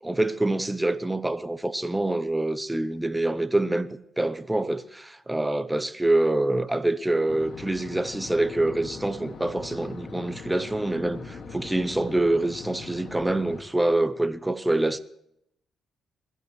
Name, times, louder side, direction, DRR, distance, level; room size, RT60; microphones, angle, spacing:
voice 1, 0.0-3.9 4.2-15.0, right 2 dB, 10° right, 0.8 m, -26 dB
sound 1, 7.3-13.6, left 4 dB, 55° left, 2.0 m, -41 dB
21.5 x 14.5 x 3.2 m
cardioid pair, 90°, 0 cm